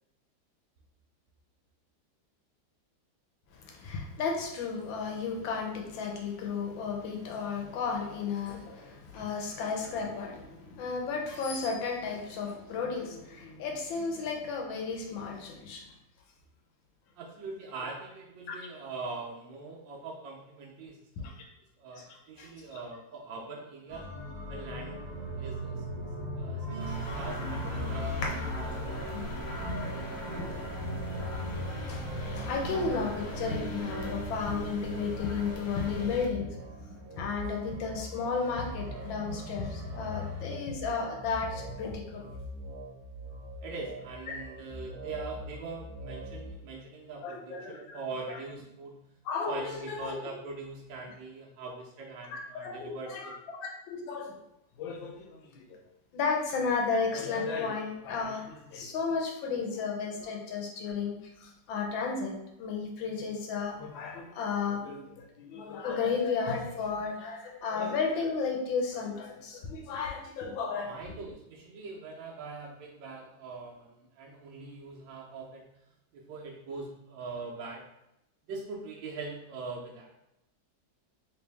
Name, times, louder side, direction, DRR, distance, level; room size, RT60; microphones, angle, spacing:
voice 1, 3.5-15.8 18.5-18.6 21.2-21.3 22.1-22.8 27.6-28.0 29.1-29.3 30.4-30.6 31.9-32.0 32.3-36.5 37.1-42.3 47.2-47.8 48.3-48.4 49.2-50.1 52.3-54.4 54.8-55.6 56.1-70.9, left 5 dB, 90° left, 2 dB, 1.5 m, -33 dB
voice 2, 17.2-21.0 21.8-24.1 24.5-25.1 25.4-25.8 26.4-29.6 43.6-49.1 49.5-53.3 70.8-75.7 76.1-77.8 78.5-80.1, right 3 dB, 80° right, -2 dB, 1.3 m, -42 dB
sound 1, 23.9-40.5, equal, 40° right, 0.6 m, -39 dB
sound 2, 26.8-36.3, left 2 dB, 70° left, 1.3 m, -41 dB
sound 3, 26.9-46.5, equal, 60° right, 1.1 m, -44 dB
3.3 x 3.1 x 3.3 m, 0.87 s
omnidirectional pair, 2.1 m